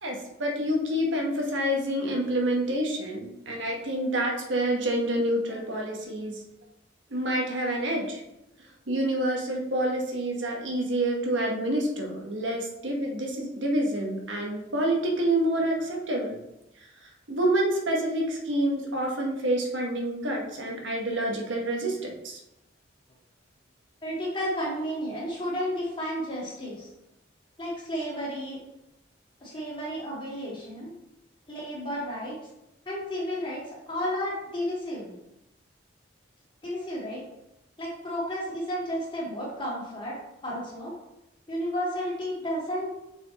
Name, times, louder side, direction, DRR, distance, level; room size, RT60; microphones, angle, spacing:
voice 1, 0.0-6.4 7.1-8.2 8.9-16.4 17.3-22.4, right 1 dB, 80° right, 0 dB, 1.3 m, -28 dB
voice 2, 24.0-26.9 27.6-28.6 29.4-30.9 31.5-32.4 32.9-35.1 36.6-37.2 37.8-40.2 40.4-41.0 41.5-43.0, equal, 25° left, -6 dB, 2.3 m, -32 dB
6.2 x 4.3 x 4.1 m, 0.86 s
head